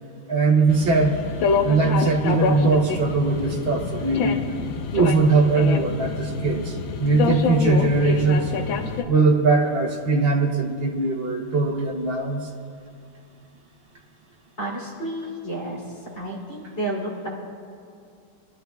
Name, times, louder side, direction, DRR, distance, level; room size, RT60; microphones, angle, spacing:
voice 1, 0.3-1.2 1.6-4.4 4.9-8.5 9.1-12.5, right 3 dB, 75° right, 0 dB, 0.5 m, -20 dB
sound 1, 0.7-9.0, left 5 dB, 70° left, 1.4 m, -26 dB
voice 2, 14.6-15.8 16.1-17.3, right 1 dB, 30° left, -4 dB, 3.3 m, -31 dB
24.0 x 11.5 x 2.3 m, 2.4 s
omnidirectional pair, 2.4 m